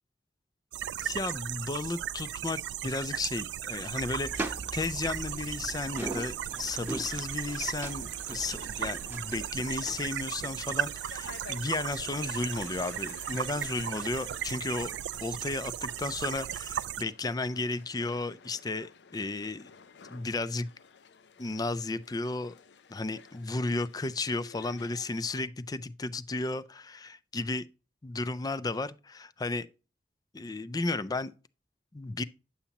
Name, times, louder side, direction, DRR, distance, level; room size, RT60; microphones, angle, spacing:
sound 1, 0.7-17.0, right 10 dB, 85° right, 0.3 m, -36 dB
voice 1, 1.0-14.9 15.2-19.7 20.1-20.7 21.4-22.5 22.9-27.6 28.0-29.7 30.3-31.3 31.9-32.2, left 3 dB, 20° left, 0.4 m, -34 dB
sound 2, 4.0-10.0, right 1 dB, 10° right, 0.9 m, -41 dB
sound 3, 6.6-25.5, left 5 dB, 75° left, 0.5 m, -52 dB
10.0 x 7.1 x 2.9 m
head